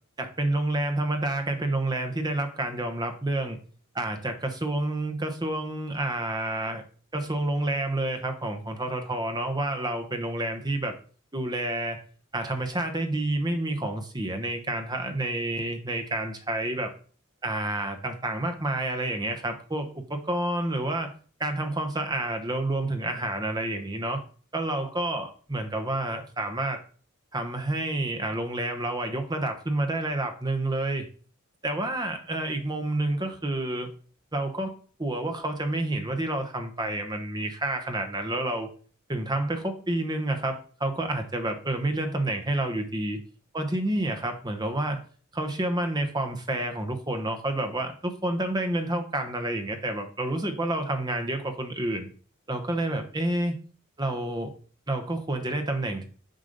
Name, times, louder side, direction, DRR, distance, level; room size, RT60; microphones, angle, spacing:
voice 1, 0.2-3.6 3.9-6.8 7.1-10.9 11.3-12.0 12.3-16.9 17.4-21.1 21.4-24.2 24.5-26.8 27.3-31.1 31.6-33.9 34.3-38.7 39.1-43.2 43.5-45.0 45.3-52.1 52.5-53.6 54.0-54.5 54.9-56.1, right 1 dB, 20° right, 6 dB, 1.2 m, -29 dB
7.8 x 4.8 x 5.4 m, 0.41 s
head